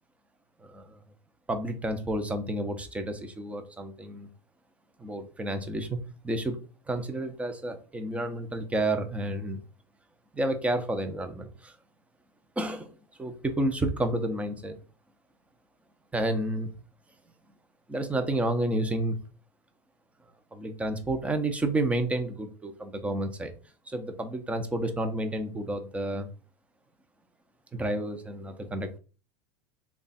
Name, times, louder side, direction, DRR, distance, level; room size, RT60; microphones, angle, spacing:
voice 1, 0.6-1.0 1.5-4.3 5.0-6.0 6.2-6.6 6.9-9.6 10.3-11.7 12.6-12.9 13.2-14.8 16.1-16.7 17.9-19.2 20.5-23.5 23.9-26.3 27.7-29.0, right 1 dB, 10° right, 7 dB, 0.6 m, -30 dB
3.2 x 2.4 x 4.0 m, 0.35 s
supercardioid pair, 120°, 12 cm